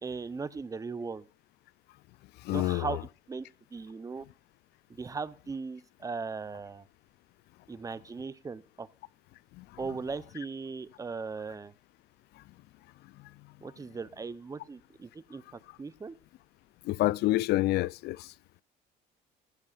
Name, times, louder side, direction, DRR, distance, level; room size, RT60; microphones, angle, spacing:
voice 1, 0.0-1.3 2.5-4.3 4.9-6.8 7.7-8.9 9.8-11.7 13.6-16.1, right 4 dB, 20° right, 0.7 m, -38 dB
voice 2, 2.4-2.9 9.6-9.7 16.9-18.3, left 17 dB, 75° left, 0.5 m, -27 dB
15.0 x 12.5 x 2.5 m
cardioid pair, 110°, 17 cm